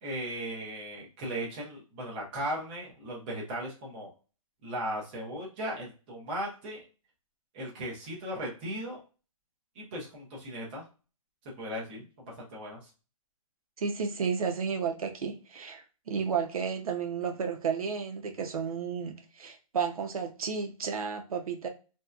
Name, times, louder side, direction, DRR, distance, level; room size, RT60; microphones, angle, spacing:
voice 1, 0.0-4.1 4.6-6.8 7.5-9.0 9.8-10.8 11.6-12.9, right 1 dB, 15° right, 0.6 m, -37 dB
voice 2, 13.8-21.7, right 6 dB, 80° right, 0.6 m, -32 dB
2.6 x 2.2 x 2.3 m
hypercardioid pair, 170°, 18 cm